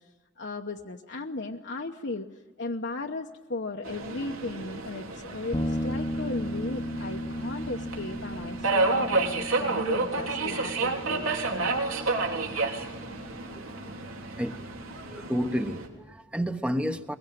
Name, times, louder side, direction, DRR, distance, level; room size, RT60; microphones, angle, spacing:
voice 1, 0.4-2.3 2.6-11.7, left 2 dB, 55° left, 2 dB, 1.0 m, -36 dB
Subway metro underground, 3.8-15.9, right 3 dB, 85° right, 3.6 m, -31 dB
sound 1, 5.5-15.0, equal, 25° left, 0.9 m, -36 dB
voice 2, 15.1-17.2, equal, 5° right, 8 dB, 1.0 m, -30 dB
22.5 x 21.5 x 9.3 m, 1.3 s
head